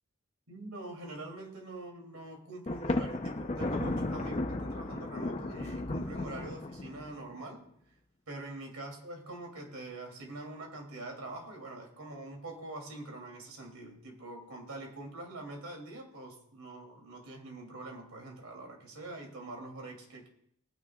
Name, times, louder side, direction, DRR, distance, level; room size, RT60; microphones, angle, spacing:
voice 1, 0.5-7.6 8.3-20.3, right 2 dB, 75° right, 1 dB, 2.9 m, -44 dB
Thunder, 2.7-7.2, left 2 dB, 30° left, 0.6 m, -34 dB
20.0 x 9.3 x 2.4 m, 0.70 s
head